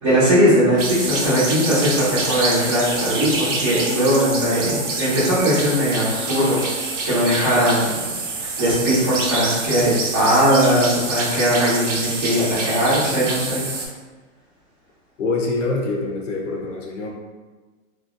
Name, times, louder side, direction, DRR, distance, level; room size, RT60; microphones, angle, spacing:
voice 1, 0.0-6.6 7.0-8.1 8.6-13.6, equal, 20° right, -11 dB, 0.9 m, -19 dB
sound 1, 0.8-13.9, right 3 dB, 65° right, 0.8 m, -26 dB
voice 2, 15.2-17.1, left 3 dB, 65° left, 0 dB, 0.7 m, -25 dB
3.0 x 2.7 x 2.5 m, 1.3 s
hypercardioid pair, 175°, 40 cm